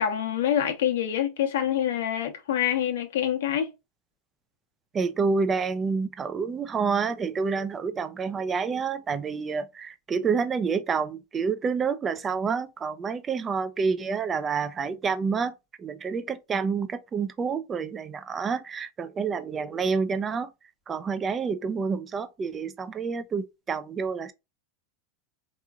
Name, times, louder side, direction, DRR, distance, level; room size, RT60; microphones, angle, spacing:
voice 1, 0.0-3.7, left 10 dB, 85° left, 0.9 m, -26 dB
voice 2, 4.9-15.5 15.8-20.5 20.9-24.3, right 5 dB, 20° right, 0.3 m, -28 dB
3.7 x 3.0 x 2.3 m
supercardioid pair, 155°, 0 cm